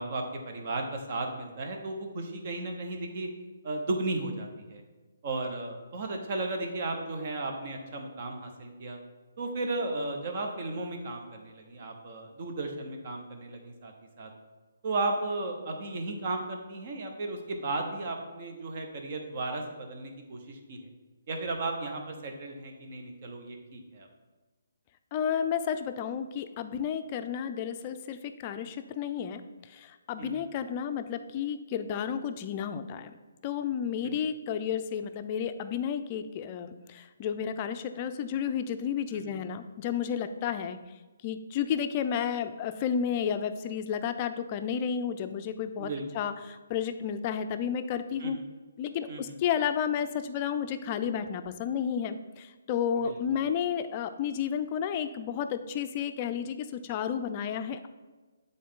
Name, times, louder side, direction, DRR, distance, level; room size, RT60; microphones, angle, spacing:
voice 1, 0.0-3.3 3.6-4.8 5.2-9.0 9.4-14.3 14.8-20.9 21.3-24.1 30.2-30.4 34.0-34.2 39.1-39.3 45.8-46.0 48.2-48.4 49.1-49.3 53.0-53.2, right 2 dB, 45° right, 3 dB, 1.1 m, -35 dB
voice 2, 25.1-29.4 29.7-33.1 33.4-40.8 41.2-48.4 48.8-57.9, left 8 dB, 30° left, 9 dB, 0.4 m, -32 dB
8.4 x 3.9 x 3.7 m, 1.3 s
hypercardioid pair, 150°, 0 cm